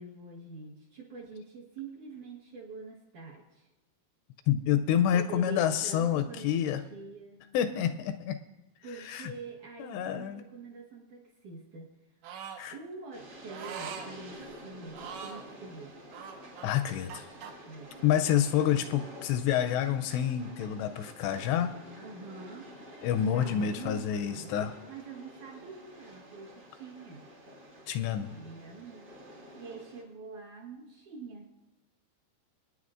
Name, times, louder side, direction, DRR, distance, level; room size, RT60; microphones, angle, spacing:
voice 1, 0.0-3.7 4.9-7.4 8.8-11.9 12.7-15.9 17.7-18.1 22.0-22.7 23.3-24.5 24.9-27.3 28.3-29.1 29.6-31.5, right 4 dB, 70° right, -2 dB, 1.9 m, -45 dB
voice 2, 4.5-6.8 7.5-8.4 9.1-9.3 9.8-10.4 12.6-12.8 16.6-17.3 18.0-21.8 23.0-24.7 27.9-28.3, left 10 dB, 85° left, 8 dB, 2.5 m, -28 dB
sound 1, 12.2-12.6 13.5-14.1 14.9-15.5 16.1-17.5, right 7 dB, 85° right, 3.5 m, -42 dB
Train, 13.1-30.0, equal, 55° right, 1.1 m, -49 dB
26.5 x 9.6 x 2.5 m, 0.99 s
omnidirectional pair, 5.3 m